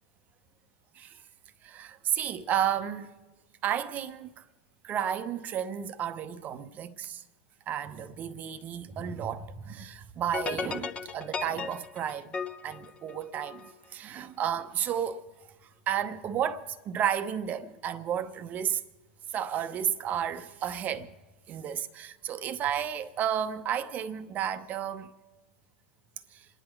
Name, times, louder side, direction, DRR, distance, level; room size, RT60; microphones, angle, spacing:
voice 1, 1.6-3.1 3.6-4.4 4.8-7.2 7.7-12.4 12.6-15.3 15.9-18.8 19.3-21.1 21.5-25.1 26.3-26.5, right 9 dB, 25° right, 0.8 m, -32 dB
sound 1, 10.3-13.7, left 5 dB, 20° left, 0.8 m, -36 dB
27.5 x 10.5 x 4.6 m
figure-of-eight pair, 95°, 6 cm